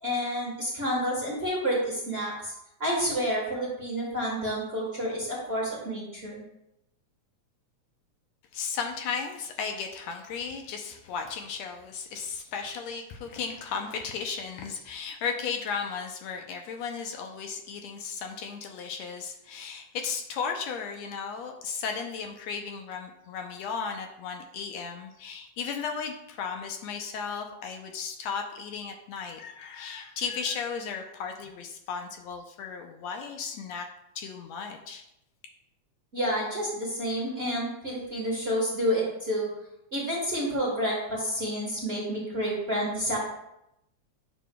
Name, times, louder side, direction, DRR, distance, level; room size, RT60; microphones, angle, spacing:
voice 1, 0.0-2.5 2.8-6.4 36.1-39.5 39.9-43.2, equal, 55° right, -4 dB, 0.7 m, -29 dB
voice 2, 8.5-33.9 34.1-35.0, left 6 dB, 75° left, 4 dB, 1.7 m, -35 dB
9.0 x 6.5 x 2.2 m, 0.84 s
omnidirectional pair, 3.4 m